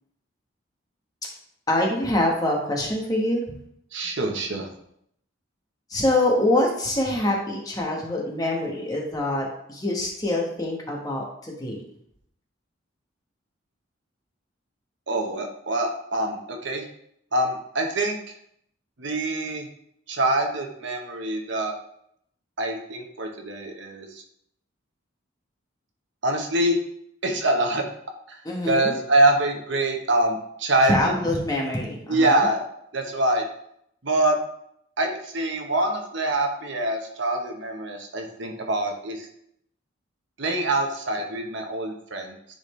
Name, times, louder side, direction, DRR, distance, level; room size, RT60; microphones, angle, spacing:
voice 1, 1.7-3.4 5.9-11.8 28.4-29.0 30.9-32.4, left 1 dB, 20° left, -1 dB, 1.3 m, -25 dB
voice 2, 3.9-4.7 15.1-16.8 17.3-18.2 19.0-19.7 20.1-21.7 22.6-24.2 26.2-26.8 27.2-27.8 28.3-28.4 28.6-31.1 32.1-32.6 32.9-33.4 34.0-34.4 35.0-39.3 40.4-42.6, right 1 dB, 65° right, 3 dB, 1.0 m, -25 dB
10.0 x 4.2 x 3.2 m, 0.72 s
head